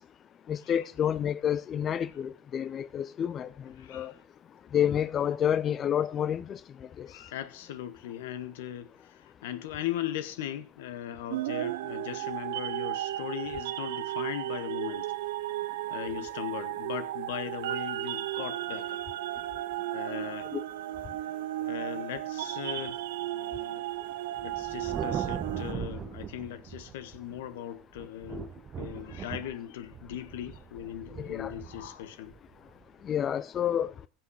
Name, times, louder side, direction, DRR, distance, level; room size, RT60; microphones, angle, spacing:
voice 1, 0.5-3.5 3.9-4.1 4.7-6.6 7.0-7.1 20.5-20.6 31.2-31.5 33.0-33.9, left 9 dB, 35° left, 0.5 m, -29 dB
voice 2, 3.8-4.2 7.1-15.1 15.9-19.0 19.9-20.5 21.6-23.8 24.4-32.3, left 11 dB, 80° left, 1.2 m, -39 dB
sound 1, 11.3-25.7, right 15 dB, 85° right, 0.7 m, -34 dB
Thunder, 24.4-27.5 27.9-33.3, right 8 dB, 35° right, 0.7 m, -40 dB
15.5 x 5.9 x 6.4 m
supercardioid pair, 105°, 0 cm